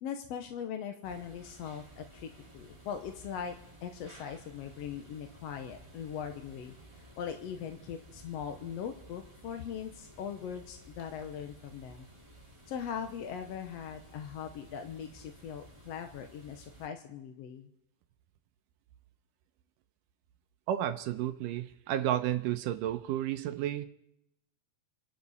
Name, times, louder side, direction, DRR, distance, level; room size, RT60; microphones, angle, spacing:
voice 1, 0.0-6.7 7.2-12.1 12.7-17.7, left 8 dB, 65° left, 6 dB, 1.7 m, -40 dB
sound 1, 1.0-16.9, right 1 dB, 10° right, 1.9 m, -55 dB
voice 2, 20.7-23.9, right 12 dB, 80° right, 9 dB, 2.2 m, -32 dB
29.0 x 11.5 x 4.2 m, 0.80 s
omnidirectional pair, 3.9 m